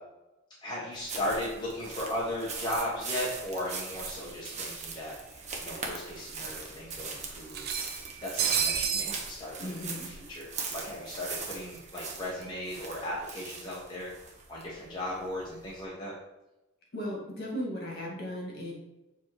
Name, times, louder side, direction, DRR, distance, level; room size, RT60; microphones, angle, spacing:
voice 1, 0.6-5.2 5.6-7.7 8.2-14.1 14.5-16.1, left 1 dB, 20° left, -6 dB, 1.1 m, -36 dB
sound 1, 0.9-15.8, right 4 dB, 35° right, 0.9 m, -41 dB
sound 2, 4.1-4.2 4.5-4.6 5.7-5.8 6.1-6.2 7.5-9.2, right 8 dB, 50° right, 0.5 m, -30 dB
voice 2, 9.6-10.1 16.9-18.7, equal, 50° left, -3 dB, 2.0 m, -36 dB
7.1 x 3.0 x 4.6 m, 0.97 s
head